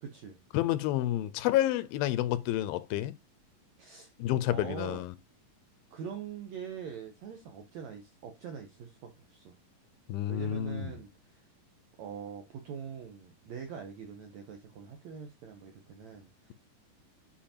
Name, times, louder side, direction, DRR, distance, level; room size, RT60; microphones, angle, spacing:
voice 1, 0.0-0.4 3.8-4.1 4.5-5.1 5.9-9.5 10.3-11.5 12.0-16.5, right 7 dB, 75° right, 1.6 m, -43 dB
voice 2, 0.5-3.1 4.2-5.1 10.1-10.9, left 13 dB, 85° left, 2.3 m, -29 dB
8.7 x 5.1 x 2.8 m
omnidirectional pair, 4.3 m